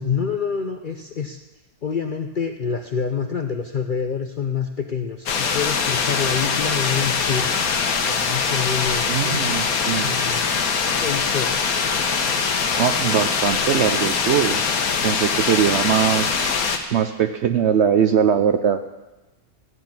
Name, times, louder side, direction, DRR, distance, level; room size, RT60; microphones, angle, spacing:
voice 1, 0.0-1.4 1.8-7.5 8.1-10.5 10.8-11.7, left 6 dB, 55° left, 5 dB, 0.6 m, -27 dB
sound 1, 5.3-16.8, left 5 dB, 75° left, 1.5 m, -22 dB
voice 2, 9.1-10.1 12.8-14.6 15.0-16.4 16.9-18.8, right 8 dB, 65° right, 9 dB, 0.7 m, -21 dB
14.0 x 6.1 x 8.7 m, 1.1 s
omnidirectional pair, 1.6 m